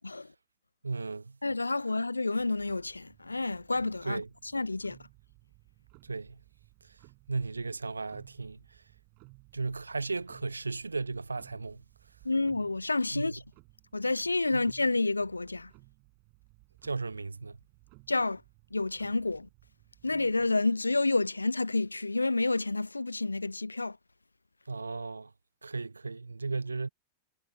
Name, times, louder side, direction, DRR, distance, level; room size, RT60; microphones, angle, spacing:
voice 1, 0.8-1.4 4.0-4.3 6.0-6.4 7.3-8.6 9.5-11.8 13.1-13.3 14.5-14.6 16.8-17.6 24.7-25.3 25.6-26.9, right 3 dB, 80° right, 1.2 m, -35 dB
voice 2, 1.4-5.0 12.2-13.4 13.9-15.7 18.1-18.4 18.7-19.5 20.0-24.0, left 3 dB, 80° left, 0.5 m, -29 dB
Clock, 2.3-20.8, right 35 dB, 45° right, 5.4 m, -59 dB
figure-of-eight pair, 90°, 0 cm